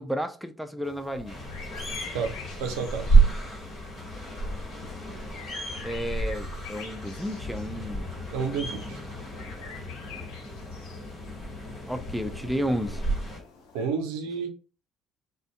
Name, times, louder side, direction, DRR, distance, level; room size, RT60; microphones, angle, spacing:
voice 1, 0.0-1.4 5.8-8.1 11.9-13.0, equal, ahead, 0.4 m, -32 dB
sound 1, 0.8-13.9, left 5 dB, 75° left, 0.5 m, -47 dB
sound 2, 1.3-13.4, right 3 dB, 55° left, 1.1 m, -29 dB
voice 2, 2.1-3.2 8.3-9.0 13.7-14.5, right 5 dB, 75° right, 0.4 m, -31 dB
2.5 x 2.1 x 2.3 m
hypercardioid pair, 50°, 0 cm